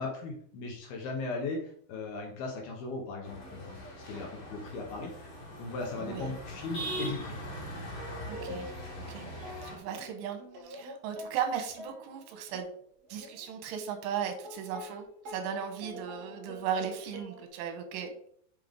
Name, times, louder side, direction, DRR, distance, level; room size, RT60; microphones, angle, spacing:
voice 1, 0.0-5.3 5.6-7.4, left 3 dB, 70° left, 0 dB, 2.5 m, -37 dB
sound 1, 3.2-9.8, equal, 40° left, 3.0 m, -41 dB
sound 2, 8.0-12.7 13.0-13.5 13.9-14.0 14.4-17.5, left 1 dB, 55° right, 2.0 m, -46 dB
voice 2, 8.3-8.7 9.1-10.4 10.7-12.7 13.1-18.1, right 8 dB, 90° right, 5 dB, 3.6 m, -36 dB
7.5 x 5.5 x 3.6 m, 0.62 s
omnidirectional pair, 5.4 m